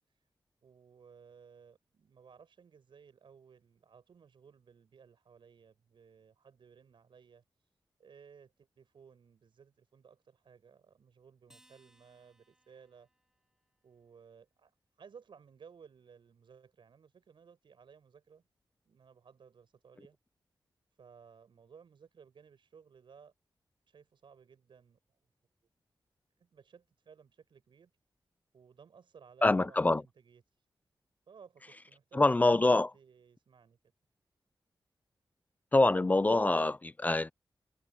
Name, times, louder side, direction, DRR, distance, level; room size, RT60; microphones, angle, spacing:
voice 1, 0.6-7.4 8.0-13.1 13.8-14.7 15.0-18.4 18.8-20.2 21.0-23.3 23.9-25.0 26.4-27.9 28.5-30.4 31.3-33.8, right 6 dB, 85° right, 5.7 m, -58 dB
Acoustic guitar, 11.5-14.1, right 1 dB, 5° right, 6.0 m, -68 dB
voice 2, 29.4-30.0 32.1-32.9 35.7-37.3, left 2 dB, 20° left, 0.4 m, -25 dB
wide cardioid pair, 180°, 8 cm